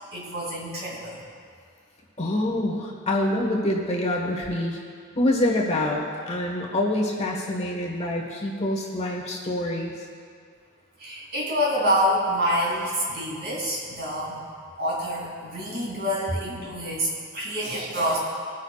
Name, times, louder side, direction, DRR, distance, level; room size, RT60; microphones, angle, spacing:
voice 1, 0.1-1.2 11.0-14.4 14.8-17.1 17.3-18.2, equal, 50° right, -5 dB, 3.2 m, -27 dB
voice 2, 2.2-4.8 5.1-9.9, left 1 dB, 30° left, -2 dB, 1.4 m, -26 dB
21.0 x 9.3 x 2.4 m, 2.1 s
head